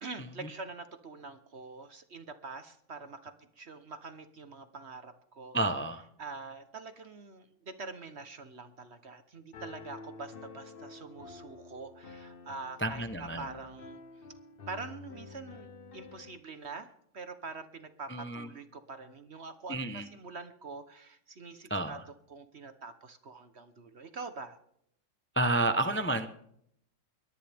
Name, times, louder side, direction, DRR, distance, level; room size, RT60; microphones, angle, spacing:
voice 1, 0.0-5.6 6.2-14.0 14.7-16.9 17.1-22.0 22.3-24.6, right 4 dB, 45° right, 10 dB, 1.1 m, -45 dB
voice 2, 5.5-6.0 12.8-13.4 18.1-18.5 19.7-20.1 21.7-22.0 25.3-26.3, right 2 dB, 15° left, 9 dB, 0.4 m, -30 dB
Piano, 9.5-16.4, left 4 dB, 40° left, 0.9 m, -49 dB
22.5 x 18.0 x 3.5 m, 0.73 s
omnidirectional pair, 1.9 m